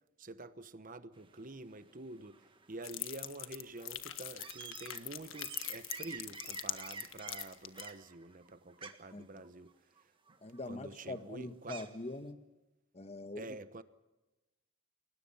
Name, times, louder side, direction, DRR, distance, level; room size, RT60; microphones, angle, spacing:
voice 1, 0.2-9.7 10.7-11.8 13.4-13.8, right 2 dB, 40° right, 1.1 m, -48 dB
sound 1, 1.1-12.2, right 5 dB, 25° right, 1.7 m, -52 dB
sound 2, 2.8-7.9, left 13 dB, 75° left, 1.5 m, -42 dB
voice 2, 9.1-9.4 10.4-12.4 12.9-13.6, left 2 dB, 30° left, 1.3 m, -43 dB
29.5 x 21.0 x 5.6 m
head